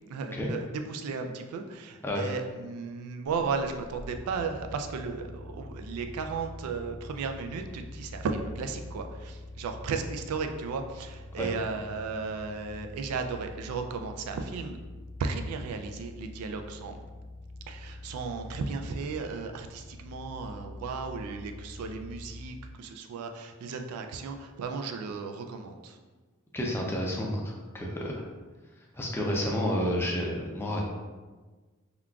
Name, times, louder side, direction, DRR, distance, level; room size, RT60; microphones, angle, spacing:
voice 1, 0.1-14.8 15.2-17.0 17.7-26.0, right 4 dB, 85° right, 7 dB, 0.3 m, -35 dB
sound 1, 3.2-22.5, left 1 dB, 65° left, 0.5 m, -45 dB
voice 2, 26.5-28.2 28.9-30.8, equal, 10° left, -1 dB, 0.4 m, -30 dB
3.6 x 2.3 x 2.3 m, 1.3 s
head